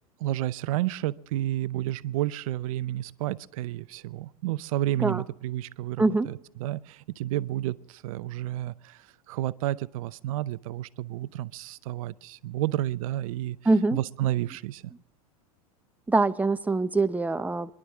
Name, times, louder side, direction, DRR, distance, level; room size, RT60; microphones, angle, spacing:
voice 1, 0.2-13.6 13.9-14.9, right 14 dB, 70° right, 16 dB, 0.7 m, -31 dB
voice 2, 13.7-14.0 16.1-17.7, right 3 dB, 10° right, 11 dB, 0.7 m, -24 dB
27.0 x 11.5 x 3.6 m, 0.87 s
hypercardioid pair, 100°, 19 cm